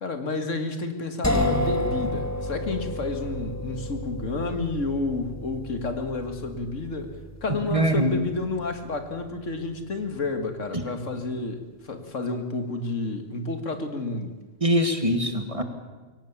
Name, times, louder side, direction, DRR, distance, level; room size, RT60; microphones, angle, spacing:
voice 1, 0.0-7.2 7.4-14.3, left 3 dB, 75° left, 7 dB, 2.1 m, -30 dB
sound 1, 1.2-11.0, left 1 dB, 15° left, 1.4 m, -32 dB
voice 2, 7.7-8.1 10.7-10.8 14.6-15.6, right 1 dB, 25° right, 6 dB, 1.9 m, -23 dB
23.0 x 18.0 x 7.2 m, 1.3 s
omnidirectional pair, 1.3 m